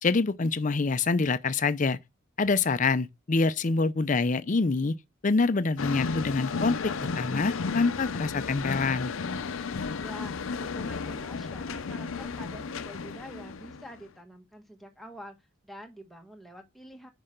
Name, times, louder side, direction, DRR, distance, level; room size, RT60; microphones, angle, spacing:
voice 1, 0.0-2.0 2.4-5.0 5.2-9.1, left 4 dB, 40° left, 0.5 m, -26 dB
sound 1, 5.8-14.1, left 4 dB, 90° left, 0.6 m, -33 dB
voice 2, 10.0-15.4 15.6-17.1, equal, ahead, 1.2 m, -46 dB
5.7 x 5.5 x 6.5 m
head